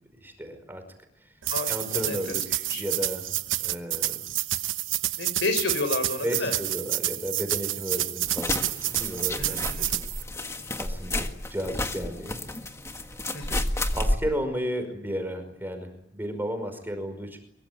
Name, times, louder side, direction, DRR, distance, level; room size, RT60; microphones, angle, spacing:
voice 1, 0.2-0.8 1.7-4.2 6.2-9.9 10.8-12.4 13.9-17.4, equal, 10° right, 7 dB, 5.3 m, -33 dB
sound 1, 1.4-10.2, right 14 dB, 75° right, 1.1 m, -29 dB
voice 2, 1.5-2.4 2.7-2.8 5.2-6.6 9.4-9.9 13.3-13.6, left 2 dB, 65° left, 10 dB, 6.0 m, -31 dB
sound 2, 8.3-14.2, left 1 dB, 15° left, 1.7 m, -31 dB
24.0 x 23.5 x 9.6 m, 0.75 s
head